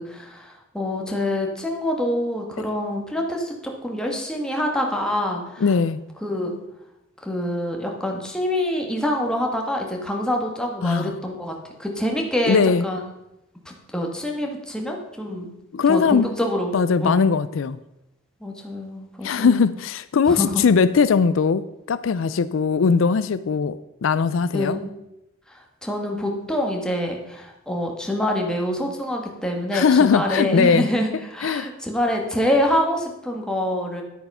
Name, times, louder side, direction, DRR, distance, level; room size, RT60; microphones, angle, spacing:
voice 1, 0.0-5.7 6.2-6.5 7.2-11.5 11.8-13.0 13.6-15.5 15.9-16.7 17.0-17.2 18.4-19.7 20.3-20.6 24.5-24.9 25.5-34.0, left 1 dB, 5° left, 1 dB, 1.7 m, -26 dB
voice 2, 5.6-6.0 10.8-11.1 12.5-12.8 15.7-16.2 16.7-17.8 19.2-24.8 29.7-30.9 31.4-31.7, left 5 dB, 70° left, 15 dB, 0.4 m, -20 dB
10.5 x 8.6 x 5.5 m, 0.88 s
head